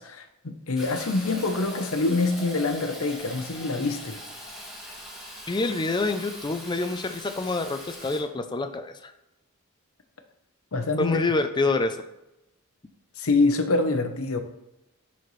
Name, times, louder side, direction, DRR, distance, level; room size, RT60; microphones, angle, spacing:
voice 1, 0.0-4.2 10.7-11.2 13.2-14.4, left 3 dB, 70° left, 7 dB, 0.8 m, -25 dB
Fill (with liquid), 0.8-8.2, equal, ahead, 1.7 m, -41 dB
voice 2, 5.5-9.1 11.0-12.0, left 3 dB, 20° left, 8 dB, 0.4 m, -27 dB
10.5 x 4.3 x 3.2 m, 0.90 s
head